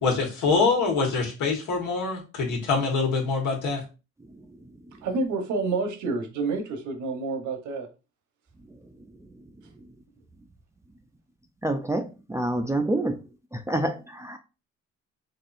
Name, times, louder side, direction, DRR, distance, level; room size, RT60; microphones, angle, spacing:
voice 1, 0.0-3.8, left 4 dB, 80° left, 1.3 m, -24 dB
voice 2, 5.0-7.9, right 3 dB, 75° right, 1.0 m, -28 dB
voice 3, 11.6-13.2 13.5-14.4, right 1 dB, 10° right, 0.4 m, -28 dB
4.2 x 2.7 x 2.5 m
cardioid pair, 90°, 30 cm